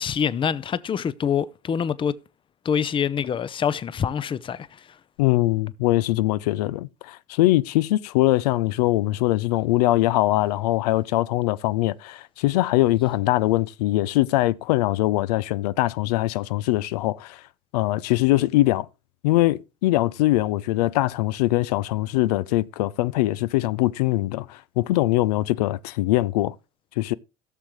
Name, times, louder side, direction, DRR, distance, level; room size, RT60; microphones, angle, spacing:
voice 1, 0.0-2.1 2.6-4.9, left 7 dB, 25° left, 0.5 m, -25 dB
voice 2, 5.2-17.4 17.7-18.9 19.2-26.5 27.0-27.1, left 17 dB, 90° left, 0.4 m, -22 dB
17.0 x 6.5 x 3.1 m
supercardioid pair, 95°, 20 cm